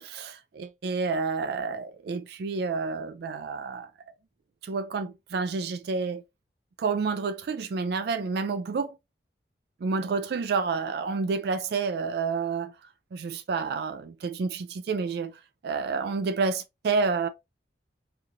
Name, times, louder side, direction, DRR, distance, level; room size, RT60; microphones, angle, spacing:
voice 1, 0.0-3.9 4.6-6.2 6.8-8.9 9.8-12.7 13.1-15.3 15.6-17.3, right 4 dB, 60° right, 0.3 m, -29 dB
3.7 x 2.9 x 2.7 m
head